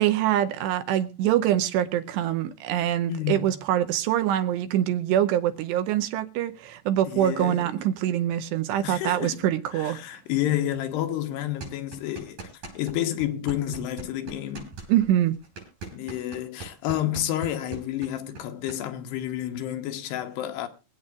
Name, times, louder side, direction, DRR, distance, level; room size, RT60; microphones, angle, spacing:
voice 1, 0.0-10.0 14.9-15.4, right 12 dB, 85° right, 2.9 m, -24 dB
voice 2, 3.1-3.5 7.1-7.7 8.8-9.4 9.7-14.7 15.9-20.7, left 12 dB, 80° left, 3.0 m, -30 dB
sound 1, 11.6-13.0 13.2-18.8, right 4 dB, 45° right, 6.6 m, -40 dB
25.0 x 8.6 x 2.4 m
omnidirectional pair, 4.8 m